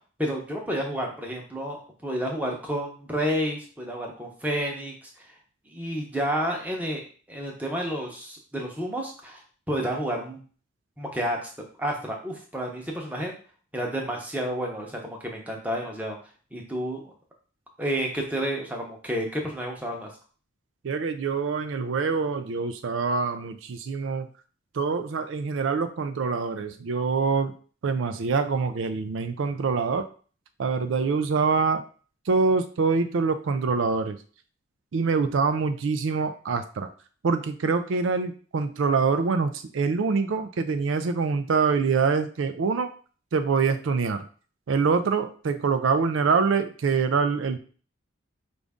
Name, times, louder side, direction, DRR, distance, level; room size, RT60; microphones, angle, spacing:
voice 1, 0.2-4.9 5.7-9.4 9.7-10.4 11.0-11.5 11.8-13.3 13.7-16.2 16.5-17.1 17.8-20.1, equal, 10° right, 0 dB, 0.8 m, -30 dB
voice 2, 20.8-24.3 24.7-27.5 27.8-30.1 30.6-31.8 32.3-34.2 34.9-36.9 37.2-42.9 43.3-44.2 44.7-47.6, right 5 dB, 75° right, 9 dB, 0.4 m, -25 dB
5.0 x 2.6 x 3.5 m, 0.40 s
head